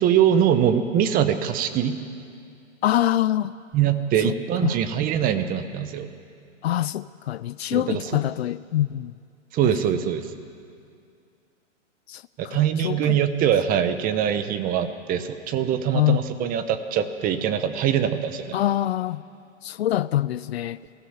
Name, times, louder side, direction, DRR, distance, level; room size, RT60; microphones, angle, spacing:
voice 1, 0.0-2.0 3.7-6.1 7.7-8.2 9.5-10.3 12.4-18.6, right 9 dB, 25° right, 1.1 m, -23 dB
voice 2, 2.8-3.5 4.2-4.3 4.6-4.8 6.6-9.1 9.6-9.7 12.1-13.2 15.9-16.5 18.5-19.2 19.6-20.8, left 12 dB, 55° left, 0.5 m, -25 dB
23.0 x 16.0 x 7.4 m
hypercardioid pair, 130°, 38 cm